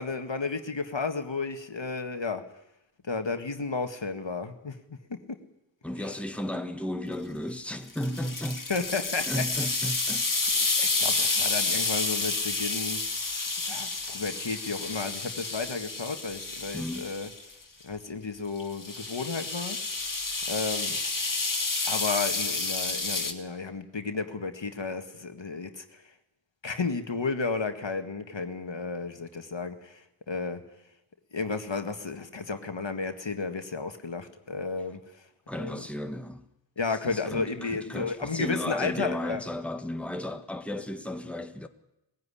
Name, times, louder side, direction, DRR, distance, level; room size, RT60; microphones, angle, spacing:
voice 1, 0.0-2.4 3.0-5.4 8.7-9.4 10.4-13.0 13.7-17.3 17.8-19.8 20.5-21.0 21.9-26.0 26.6-30.6 31.3-35.0 35.6-35.8 36.8-39.4, left 4 dB, 70° left, 1.9 m, -33 dB
voice 2, 5.8-8.7 9.3-10.6 16.7-17.1 35.5-36.4 36.9-41.7, left 1 dB, 5° left, 1.5 m, -34 dB
sound 1, 7.9-17.4 18.6-23.3, left 3 dB, 45° left, 2.0 m, -30 dB
20.0 x 16.0 x 9.9 m
wide cardioid pair, 55°, 46 cm